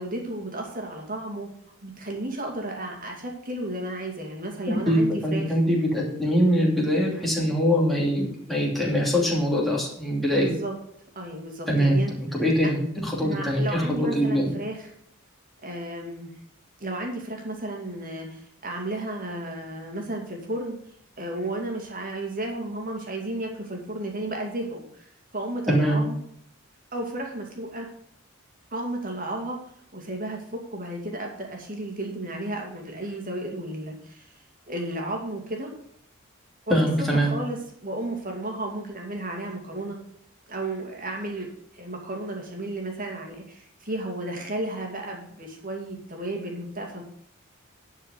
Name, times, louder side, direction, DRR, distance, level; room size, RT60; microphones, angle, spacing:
voice 1, 0.0-1.5 1.8-5.6 10.2-10.7 11.2-12.1 12.6-12.7 13.2-14.9 15.6-16.3 16.8-20.8 21.2-25.0 25.3-26.2 26.9-27.9 28.7-29.6 29.9-34.3 34.7-35.7 36.7-37.6 37.8-40.0 40.5-41.5 41.7-47.0, right 1 dB, 40° right, 1 dB, 2.4 m, -33 dB
voice 2, 4.7-10.5 11.7-14.5 25.7-26.0 36.7-37.3, equal, ahead, -4 dB, 2.8 m, -23 dB
11.0 x 4.9 x 7.8 m, 0.67 s
head